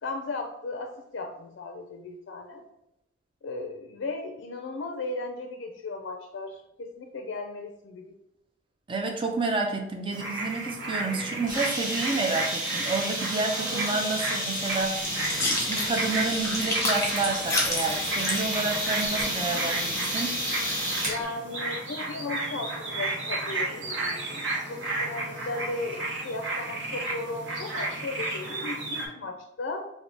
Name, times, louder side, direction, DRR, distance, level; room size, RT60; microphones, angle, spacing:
voice 1, 0.0-2.6 3.4-8.1 21.1-29.9, left 3 dB, 70° left, 4 dB, 0.4 m, -36 dB
voice 2, 8.9-20.4, right 3 dB, 25° right, 2 dB, 0.4 m, -30 dB
sound 1, 10.1-29.1, right 2 dB, 65° right, 1.0 m, -33 dB
sound 2, 11.5-21.2, equal, 45° right, 1.3 m, -31 dB
sound 3, 15.0-21.2, left 2 dB, 15° left, 0.8 m, -33 dB
3.4 x 2.6 x 3.9 m, 0.87 s
head